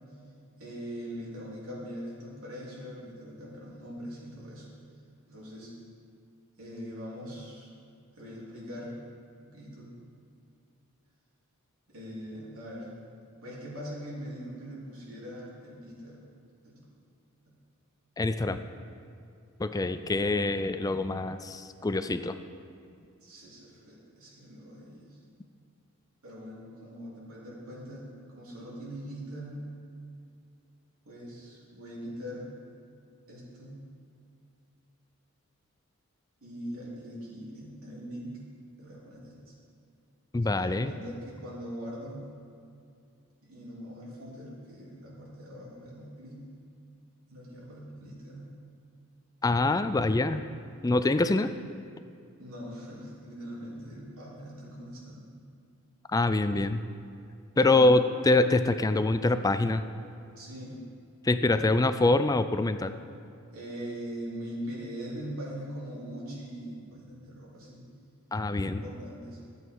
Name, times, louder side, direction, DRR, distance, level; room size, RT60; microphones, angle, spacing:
voice 1, 0.5-4.7 5.3-5.7 6.5-7.7 8.1-9.0 9.5-9.9 11.9-12.9 13.4-16.2 16.6-16.9 23.2-25.2 26.2-28.1 28.3-29.7 31.0-32.5 33.3-33.8 36.4-38.4 38.8-39.5 40.6-42.3 43.4-46.5 47.3-48.5 52.4-55.3 57.6-58.0 60.4-60.8 63.5-67.9 68.6-69.4, equal, 75° right, -6 dB, 3.2 m, -41 dB
voice 2, 18.2-18.6 19.6-22.4 40.3-40.9 49.4-50.4 50.8-51.5 56.1-56.8 57.6-59.8 61.2-62.9 68.3-68.8, left 2 dB, 15° left, 10 dB, 0.3 m, -25 dB
14.0 x 8.2 x 4.7 m, 2.4 s
head